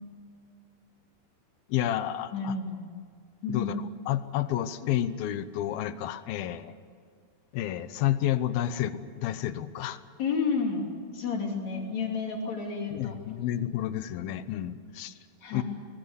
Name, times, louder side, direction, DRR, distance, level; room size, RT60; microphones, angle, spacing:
voice 1, 1.7-2.5 3.5-6.7 7.5-10.0 12.9-15.1 15.5-15.6, left 12 dB, 75° left, 13 dB, 2.5 m, -30 dB
voice 2, 2.3-2.9 3.4-3.7 10.2-10.9 11.1-13.1 15.4-15.6, left 5 dB, 45° left, 1 dB, 4.0 m, -30 dB
24.0 x 20.0 x 8.2 m, 2.1 s
omnidirectional pair, 4.7 m